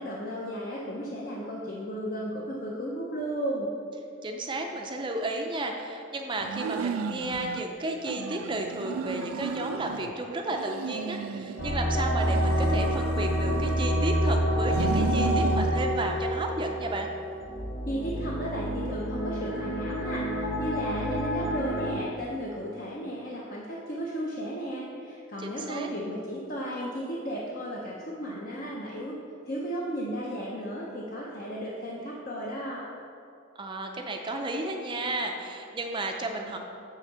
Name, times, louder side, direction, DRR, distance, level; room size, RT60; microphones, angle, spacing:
voice 1, 0.0-3.7 17.9-29.2 29.5-32.8, equal, 45° left, -4 dB, 0.7 m, -34 dB
voice 2, 4.2-17.1 25.4-25.9 33.6-36.6, right 2 dB, 25° right, 3 dB, 0.5 m, -33 dB
sound 1, 6.4-7.7 8.0-10.1 10.5-11.8 12.2-14.1 14.6-15.8, right 6 dB, 85° right, 0.3 m, -34 dB
sound 2, 11.6-21.9, equal, 60° left, 1.1 m, -28 dB
8.3 x 3.5 x 6.7 m, 2.6 s
head